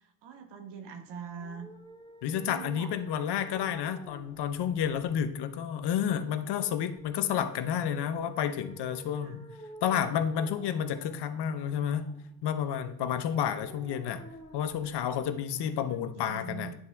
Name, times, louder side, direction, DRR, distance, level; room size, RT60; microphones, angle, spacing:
voice 1, 0.2-1.7 2.4-2.9 7.6-8.0 9.2-9.4 15.8-16.7, right 6 dB, 65° right, 6 dB, 1.5 m, -43 dB
sound 1, 1.3-16.2, equal, 15° left, 2.5 m, -52 dB
voice 2, 2.2-9.4 9.8-12.1 12.4-14.2 14.5-16.7, left 9 dB, 60° left, 9 dB, 0.9 m, -30 dB
10.5 x 4.4 x 3.6 m, 0.70 s
hypercardioid pair, 65°, 46 cm